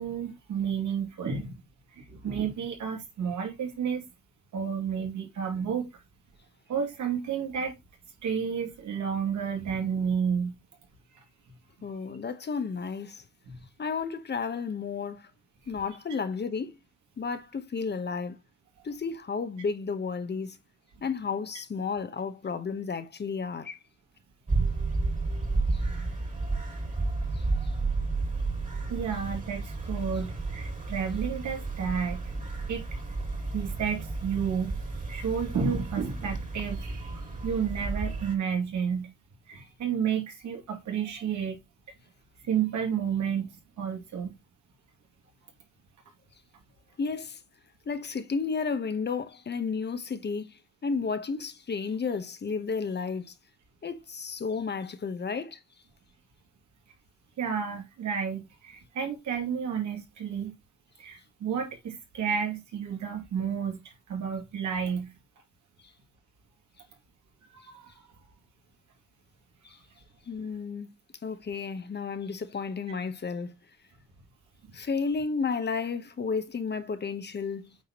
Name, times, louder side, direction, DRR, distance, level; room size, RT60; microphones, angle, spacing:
voice 1, 0.0-1.5 1.9-4.1 4.5-5.9 6.7-7.7 8.2-10.6 13.4-13.6 28.9-32.3 32.7-33.0 33.5-34.8 35.1-36.8 37.1-39.1 39.5-41.6 42.4-43.5 43.8-44.3 57.4-60.5 61.0-63.8 64.1-65.1 67.5-67.9, right 7 dB, 75° right, 2.5 m, -31 dB
voice 2, 11.8-13.2 13.8-15.3 15.7-16.8 17.2-18.4 18.8-20.6 21.0-23.8 25.7-25.8 27.3-27.7 47.0-47.4 47.9-53.3 53.8-55.6 69.6-69.8 70.3-70.9 71.2-73.5 74.7-77.8, left 5 dB, 35° left, 1.0 m, -32 dB
sound 1, 24.5-38.3, right 3 dB, 25° right, 2.3 m, -32 dB
8.5 x 4.6 x 3.0 m
cardioid pair, 100°, 30 cm